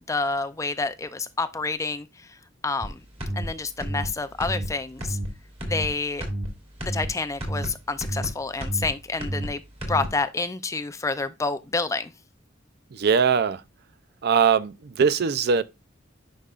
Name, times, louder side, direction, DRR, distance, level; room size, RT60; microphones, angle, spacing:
voice 1, 0.1-2.1 2.6-3.0 3.4-5.2 5.7-6.2 6.8-9.6 9.9-12.1, left 3 dB, 15° left, 0.4 m, -28 dB
sound 1, 2.8-2.9 3.2-3.5 3.8-4.1 4.4-4.7 5.0-5.3 5.6-5.9 6.2-6.5 6.8-7.1 7.4-7.7 8.0-8.3 8.6-8.9 9.2-9.5 9.8-10.1, right 1 dB, 35° right, 2.6 m, -30 dB
voice 2, 12.9-13.6 14.2-15.6, right 6 dB, 55° right, 0.5 m, -21 dB
10.0 x 5.4 x 2.4 m
head